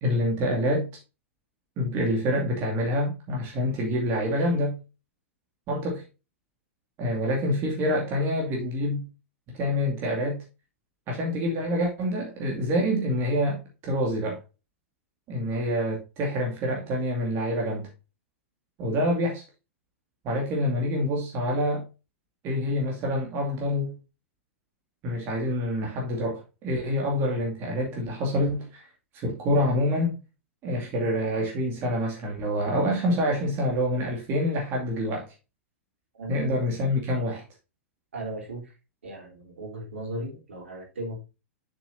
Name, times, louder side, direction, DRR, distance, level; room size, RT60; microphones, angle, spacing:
voice 1, 0.0-0.8 1.8-4.8 5.7-6.0 7.0-9.1 9.5-10.4 11.1-14.4 15.3-17.9 18.8-19.4 20.2-21.8 22.4-23.9 25.0-28.9 29.1-30.2 30.6-35.3 36.3-37.4, equal, 35° right, 2.4 m, -26 dB
voice 2, 36.2-36.6 38.1-38.7 39.0-41.2, right 1 dB, 65° right, 3.7 m, -37 dB
7.7 x 7.0 x 2.7 m
figure-of-eight pair, 95°, 7 cm